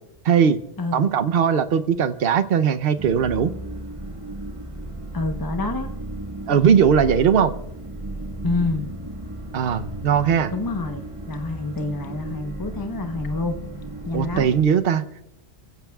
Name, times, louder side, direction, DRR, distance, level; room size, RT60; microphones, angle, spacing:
voice 1, 0.2-0.6 0.9-3.5 6.5-7.5 9.5-10.5 14.1-15.2, right 7 dB, 60° right, 10 dB, 0.9 m, -19 dB
sound 1, 3.0-14.6, right 1 dB, 30° right, 1.5 m, -34 dB
voice 2, 5.1-5.9 8.4-8.9 10.5-13.6 14.0-14.5, left 3 dB, 20° left, 5 dB, 0.9 m, -27 dB
30.0 x 16.0 x 2.3 m, 0.87 s
omnidirectional pair, 1.2 m